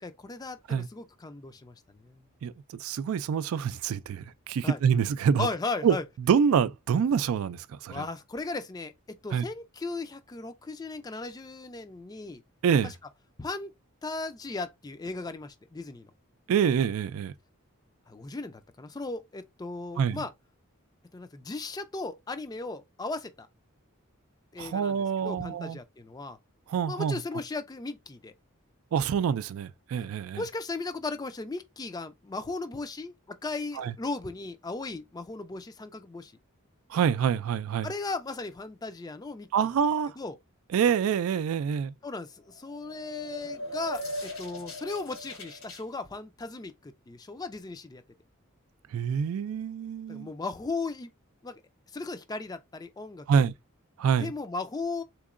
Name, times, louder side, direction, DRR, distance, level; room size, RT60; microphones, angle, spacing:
voice 1, 0.0-2.3 4.6-4.8 5.4-6.0 7.9-8.9 9.2-12.4 12.8-12.9 13.4-13.7 14.0-16.1 18.1-20.3 21.1-23.5 24.5-26.4 26.9-28.3 30.4-36.3 37.8-39.5 40.2-40.4 42.0-48.0 50.1-51.1 51.4-51.6 51.9-53.5 54.2-55.0, left 3 dB, 20° left, 0.3 m, -36 dB
voice 2, 2.4-5.5 5.8-5.9 6.3-8.0 9.3-9.4 12.6-12.9 16.5-17.3 20.0-20.2 24.6-25.8 26.7-27.2 28.9-30.4 33.8-33.9 36.9-37.9 39.5-40.1 40.7-41.9 48.9-50.3 53.3-53.5 54.0-54.3, right 7 dB, 75° right, 0.3 m, -26 dB
sound 1, 42.5-45.8, left 1 dB, 70° left, 1.2 m, -39 dB
3.6 x 3.0 x 2.4 m
head